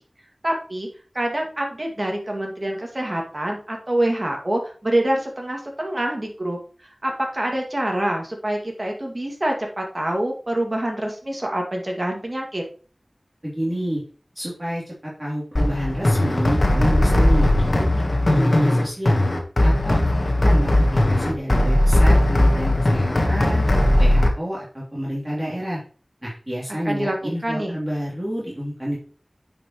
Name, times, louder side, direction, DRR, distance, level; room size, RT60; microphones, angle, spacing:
voice 1, 0.4-0.9 1.1-12.6 26.9-27.2 27.4-27.8, right 1 dB, 40° right, 1 dB, 2.1 m, -26 dB
voice 2, 13.4-14.0 14.3-17.5 17.8-19.2 19.6-20.7 21.1-23.6 24.0-25.8 26.2-29.0, equal, 25° right, -7 dB, 3.0 m, -29 dB
sound 1, 15.6-24.3, left 1 dB, 65° left, 1.3 m, -18 dB
8.9 x 5.4 x 3.1 m, 0.40 s
wide cardioid pair, 55°, 0 cm